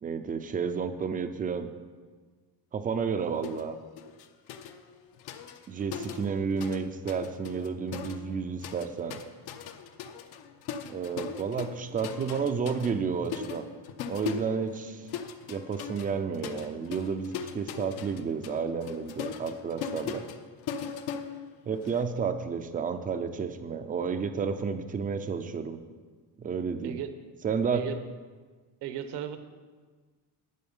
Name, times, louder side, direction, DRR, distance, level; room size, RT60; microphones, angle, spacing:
voice 1, 0.0-1.7 2.7-3.8 5.7-9.2 10.9-13.7 14.1-15.1 15.5-20.2 21.7-25.8 26.4-27.0 27.4-27.8, right 6 dB, 20° right, 9 dB, 0.5 m, -31 dB
sound 1, 3.4-3.7 4.0-6.8 7.1-22.0, left 7 dB, 65° left, 0.9 m, -40 dB
voice 2, 28.8-29.4, right 11 dB, 70° right, 9 dB, 1.1 m, -35 dB
11.5 x 8.6 x 5.4 m, 1.5 s
cardioid pair, 170°, 42 cm